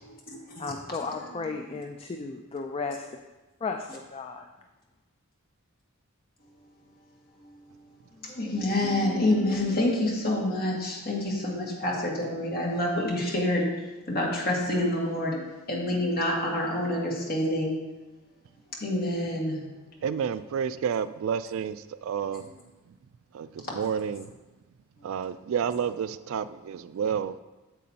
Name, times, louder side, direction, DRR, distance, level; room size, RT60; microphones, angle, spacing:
voice 1, 0.6-3.1 3.6-4.5, left 4 dB, 25° left, 4 dB, 0.4 m, -34 dB
voice 2, 8.4-13.6 14.1-15.3 15.7-17.7 18.8-19.5, left 1 dB, 45° left, -3 dB, 1.9 m, -27 dB
voice 3, 20.0-22.4 23.3-24.3 25.0-27.4, right 7 dB, 65° right, 15 dB, 0.3 m, -30 dB
9.2 x 7.6 x 2.8 m, 1.1 s
head